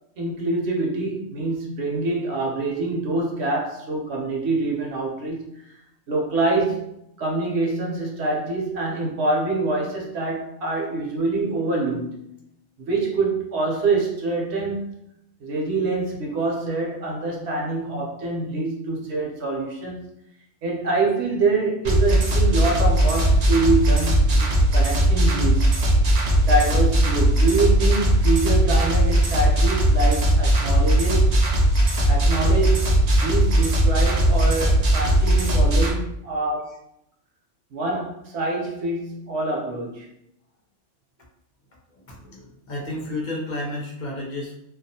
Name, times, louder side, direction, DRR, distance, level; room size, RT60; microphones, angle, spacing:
voice 1, 0.2-5.8 6.1-6.9 7.2-12.4 12.8-14.8 15.4-20.1 20.6-25.7 26.5-31.4 32.1-36.8 37.7-40.1, right 3 dB, 65° right, -1 dB, 0.8 m, -25 dB
sound 1, 21.8-35.9, right 1 dB, 90° right, 0.3 m, -19 dB
voice 2, 41.9-44.5, left 1 dB, 50° left, -2 dB, 0.5 m, -32 dB
2.3 x 2.3 x 2.7 m, 0.78 s
omnidirectional pair, 1.3 m